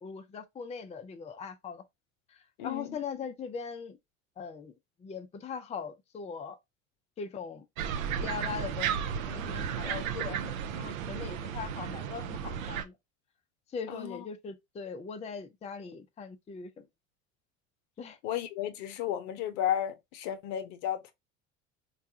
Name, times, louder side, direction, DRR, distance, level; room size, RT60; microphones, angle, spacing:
voice 1, 0.0-1.8 2.3-4.0 4.4-4.7 5.0-6.6 7.2-7.6 8.2-12.9 13.7-16.9 18.0-18.2, left 6 dB, 15° left, 0.5 m, -40 dB
voice 2, 2.6-3.0 13.9-14.2 18.2-21.1, left 10 dB, 65° left, 0.7 m, -33 dB
sound 1, 7.8-12.8, right 8 dB, 75° right, 0.6 m, -34 dB
3.9 x 2.3 x 2.7 m
hypercardioid pair, 70°, 41 cm